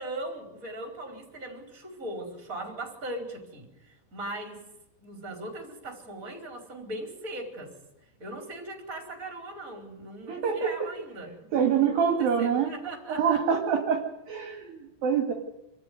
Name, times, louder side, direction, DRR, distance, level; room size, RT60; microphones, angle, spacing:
voice 1, 0.0-4.6 5.0-7.7 8.2-13.6 14.5-14.6, right 1 dB, 15° right, 2 dB, 4.3 m, -39 dB
voice 2, 10.3-10.7 11.5-12.7 13.1-14.0 14.3-15.3, right 7 dB, 55° right, 4 dB, 3.2 m, -25 dB
26.5 x 13.5 x 9.5 m, 0.91 s
omnidirectional pair, 5.8 m